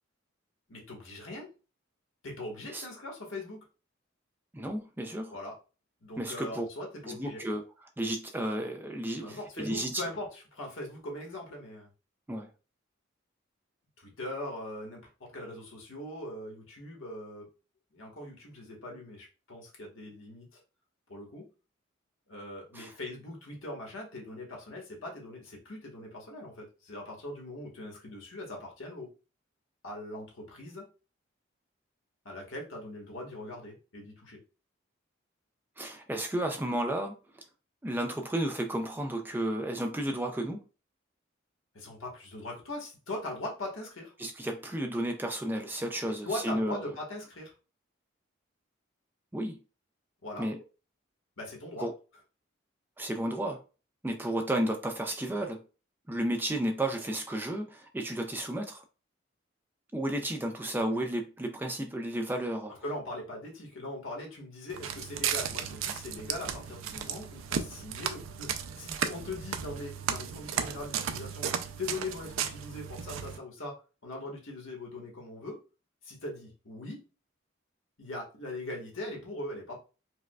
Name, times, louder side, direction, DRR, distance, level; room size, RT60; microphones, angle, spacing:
voice 1, 0.7-1.5 2.2-3.6 5.3-5.6 6.0-7.4 9.2-11.9 14.0-17.5 17.9-20.6 21.1-21.5 22.3-29.1 29.8-30.8 32.2-34.4 41.7-44.1 46.0-47.5 50.2-50.5 51.4-51.9 62.8-71.5 71.8-73.8 74.0-75.6 76.0-77.0 78.0-79.8, left 1 dB, 85° left, 1.2 m, -41 dB
voice 2, 4.5-5.3 6.2-6.7 7.0-7.6 8.0-10.0 12.3-12.5 22.7-22.9 35.8-37.4 37.8-40.6 44.2-46.9 49.3-49.6 50.4-50.6 51.8-51.9 53.0-53.6 54.0-55.6 56.1-58.8 59.9-62.7, right 1 dB, 10° right, 0.3 m, -32 dB
Walk footsteps, 64.7-73.4, right 8 dB, 90° right, 0.4 m, -35 dB
4.6 x 2.2 x 2.3 m
head